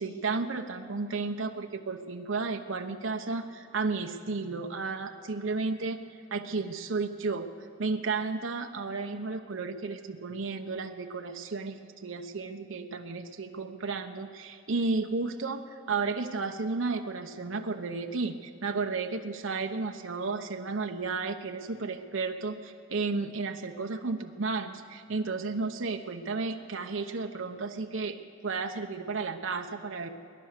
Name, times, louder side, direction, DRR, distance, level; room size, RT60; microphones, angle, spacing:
voice 1, 0.0-6.0 6.3-7.5 7.8-28.2 28.4-30.1, right 4 dB, 70° right, 5 dB, 0.8 m, -33 dB
21.0 x 10.5 x 6.6 m, 2.6 s
head